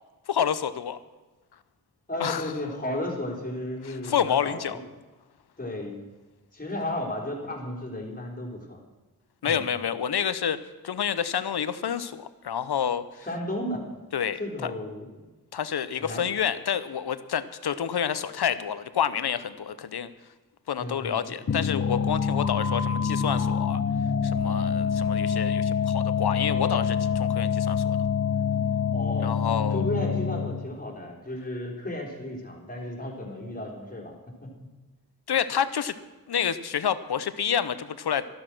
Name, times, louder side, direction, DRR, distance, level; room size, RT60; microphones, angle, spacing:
voice 1, 0.3-1.0 2.2-2.4 3.8-4.8 9.4-13.0 14.1-14.7 15.5-20.1 20.7-23.8 24.2-28.0 29.2-29.8 35.3-35.9 36.3-38.2, left 8 dB, 90° left, 14 dB, 0.9 m, -28 dB
voice 2, 2.1-4.8 5.6-6.0 6.5-8.8 9.4-9.7 13.2-13.8 14.4-15.3 16.0-16.3 20.8-21.2 28.9-29.4 29.7-34.1 34.4-34.7, left 1 dB, 20° left, -1 dB, 3.7 m, -34 dB
sound 1, 21.5-30.7, left 6 dB, 45° left, 0.8 m, -26 dB
13.0 x 13.0 x 6.1 m, 1.2 s
wide cardioid pair, 110°, 38 cm